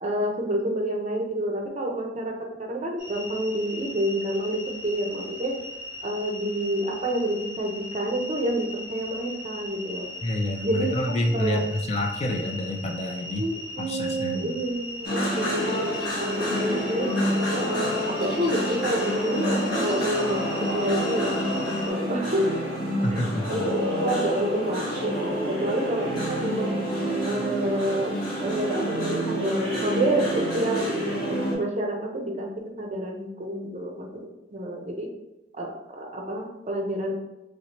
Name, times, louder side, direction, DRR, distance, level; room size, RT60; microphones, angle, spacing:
voice 1, 0.0-5.5 6.0-10.1 10.6-11.6 13.4-17.2 17.6-20.4 20.7-22.5 23.1-23.2 23.5-26.7 27.2-28.1 28.4-30.8 31.5-32.5 32.8-35.1 35.6-37.1, right 1 dB, 40° right, 1 dB, 0.6 m, -28 dB
sound 1, 3.0-21.9, left 2 dB, ahead, 1.4 m, -39 dB
voice 2, 10.2-13.4 13.8-14.6 23.0-23.6, left 1 dB, 35° left, 3 dB, 0.4 m, -28 dB
sound 2, 15.0-31.5, equal, 55° left, 1.4 m, -28 dB
3.2 x 2.9 x 2.9 m, 0.97 s
head